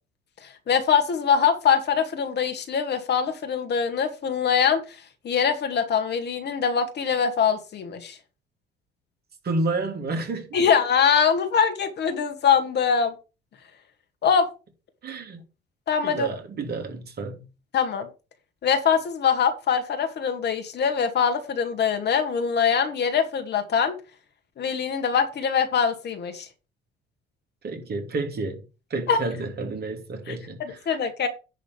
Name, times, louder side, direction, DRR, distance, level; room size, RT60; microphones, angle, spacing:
voice 1, 0.7-4.8 5.2-8.2 10.5-13.1 14.2-14.5 15.9-16.3 17.7-18.1 18.6-24.0 24.6-26.5 29.1-29.2 30.3-31.3, left 7 dB, 55° left, 2.1 m, -23 dB
voice 2, 9.4-10.7 15.0-15.4 16.0-17.5 27.6-28.6 28.9-30.8, right 3 dB, 50° right, 3.0 m, -30 dB
10.5 x 3.8 x 6.9 m
hypercardioid pair, 60°, 21 cm